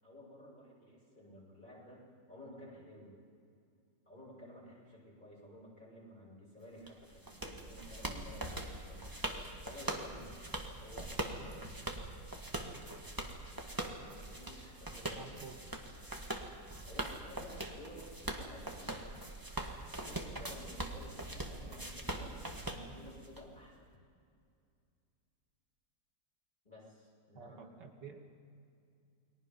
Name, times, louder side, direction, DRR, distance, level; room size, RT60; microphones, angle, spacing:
voice 1, 0.0-2.0 2.3-3.1 4.0-9.0 9.6-10.5 10.8-11.8 14.2-15.4 16.8-19.1 20.0-23.9 26.6-27.7, equal, 25° left, -4 dB, 8.3 m, -53 dB
sound 1, 6.9-23.4, right 1 dB, 10° right, 1.7 m, -42 dB
voice 2, 15.1-15.7 27.3-28.2, right 6 dB, 80° right, 2 dB, 2.4 m, -50 dB
30.0 x 22.5 x 5.4 m, 2.4 s
omnidirectional pair, 1.9 m